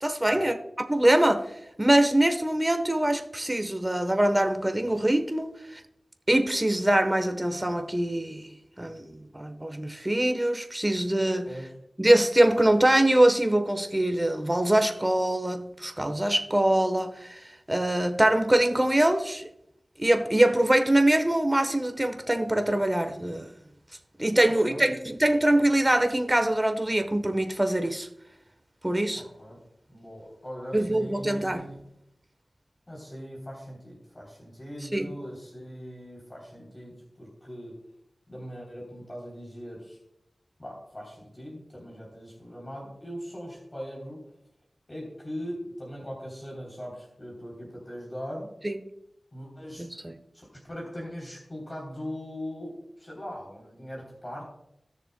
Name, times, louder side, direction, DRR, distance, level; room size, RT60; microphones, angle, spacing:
voice 1, 0.0-0.6 0.9-1.5 1.8-5.8 6.3-8.5 8.8-11.5 12.0-19.5 20.0-23.5 24.2-28.1 28.8-29.2 30.7-31.7 34.9-35.2 48.6-48.8 49.8-50.1, right 1 dB, 20° right, 1.0 m, -23 dB
voice 2, 11.4-11.8 24.4-24.9 29.1-29.6 29.9-31.8 32.9-37.8 38.3-40.0 40.6-44.2 44.9-48.5 49.3-50.1 50.3-54.4, equal, 35° left, 3.2 m, -40 dB
18.5 x 6.7 x 2.2 m
cardioid pair, 45°, 0 cm